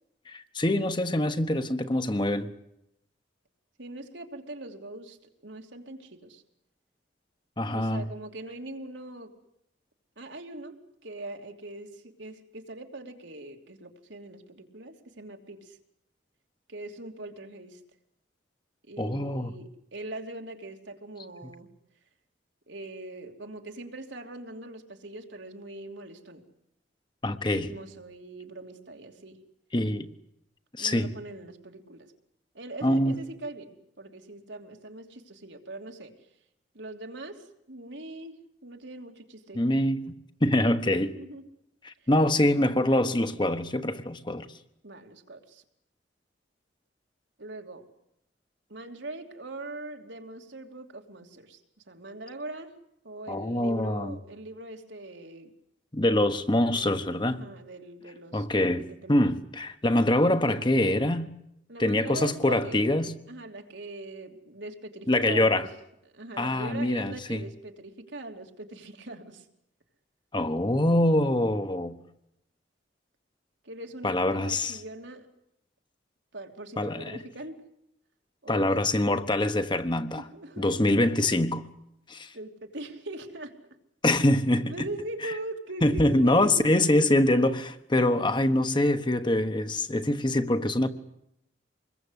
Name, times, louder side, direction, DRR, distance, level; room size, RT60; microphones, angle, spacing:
voice 1, 0.3-2.5 7.6-8.0 19.0-19.5 27.2-27.7 29.7-30.1 30.8-31.1 32.8-33.2 39.5-40.1 40.4-41.1 41.8-44.5 53.3-54.2 55.9-57.4 58.3-61.3 61.8-63.1 65.1-65.7 66.4-67.4 70.3-72.0 74.0-74.8 76.8-77.2 78.5-80.2 80.6-81.7 82.1-82.3 84.0-84.9 85.2-85.3 85.8-90.9, left 1 dB, 25° left, 1.2 m, -24 dB
voice 2, 3.8-5.2 5.4-6.4 7.7-9.3 10.2-15.8 16.7-17.8 18.9-21.7 22.7-26.4 27.4-29.4 30.8-32.1 32.5-36.1 36.7-39.6 41.1-41.4 44.8-45.6 47.4-47.8 48.7-51.6 51.9-52.7 53.0-55.5 56.7-56.9 57.3-58.5 58.8-59.4 61.7-62.9 63.3-65.7 66.1-69.4 73.6-75.3 76.3-77.7 78.4-78.8 79.6-79.7 80.2-80.9 82.3-83.6 84.7-86.7 88.0-88.2, right 2 dB, 80° right, 3.0 m, -41 dB
26.0 x 21.5 x 8.3 m
head